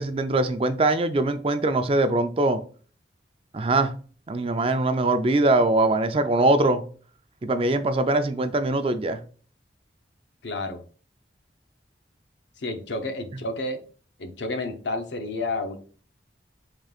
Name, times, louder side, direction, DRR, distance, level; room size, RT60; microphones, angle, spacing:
voice 1, 0.0-2.6 3.5-3.9 4.3-6.8 7.4-9.2, right 2 dB, 30° right, 9 dB, 0.4 m, -22 dB
voice 2, 10.4-10.8 12.6-13.8 14.2-15.8, left 2 dB, 85° left, 6 dB, 0.7 m, -30 dB
5.0 x 3.7 x 2.4 m, 0.42 s
head